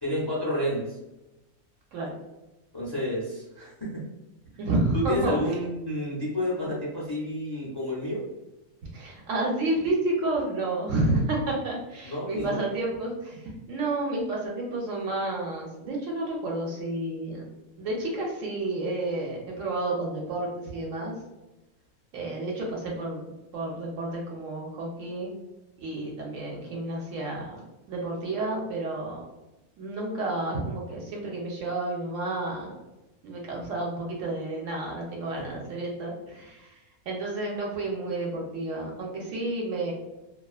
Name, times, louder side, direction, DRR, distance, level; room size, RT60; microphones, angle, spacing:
voice 1, 0.0-1.0 2.7-4.0 5.1-8.2 12.0-12.7 35.4-35.5, left 1 dB, 30° left, -7 dB, 0.4 m, -30 dB
voice 2, 4.6-5.4 8.8-17.4 17.8-21.1 22.1-25.3 25.8-27.6 27.9-29.2 29.8-32.8 33.2-39.9, right 2 dB, 70° right, -2 dB, 0.9 m, -30 dB
2.4 x 2.3 x 2.3 m, 1.0 s
omnidirectional pair, 1.5 m